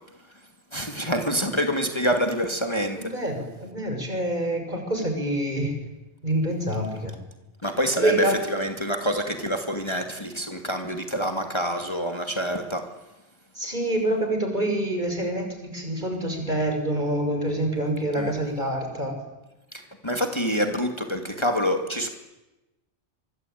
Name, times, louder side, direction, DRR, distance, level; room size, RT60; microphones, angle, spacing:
voice 1, 0.7-3.0 7.6-8.1 8.5-12.8 18.2-18.3 20.0-22.1, equal, 25° left, 5 dB, 2.4 m, -26 dB
voice 2, 3.0-5.7 6.2-7.1 8.0-8.5 13.6-19.1, right 1 dB, 40° right, 4 dB, 6.2 m, -26 dB
25.0 x 24.5 x 9.4 m, 1.0 s
omnidirectional pair, 1.2 m